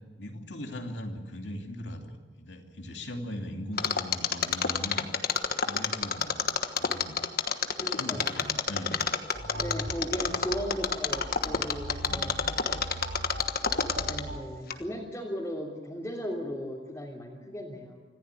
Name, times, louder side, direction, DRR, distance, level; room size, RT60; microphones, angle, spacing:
voice 1, 0.2-5.1 5.6-7.2 7.7-9.1 9.9-10.2 11.5-11.7 12.1-12.9 13.2-13.3 14.2-14.4, equal, 75° left, 3 dB, 2.8 m, -40 dB
Mechanisms, 3.8-14.4 14.7-14.8, left 6 dB, 55° left, 1.3 m, -28 dB
voice 2, 7.7-8.3 9.5-12.5 14.0-18.0, equal, 15° left, -5 dB, 3.1 m, -36 dB
sound 1, 9.3-14.4, equal, 85° right, 5.5 m, -40 dB
25.5 x 15.0 x 8.4 m, 1.4 s
head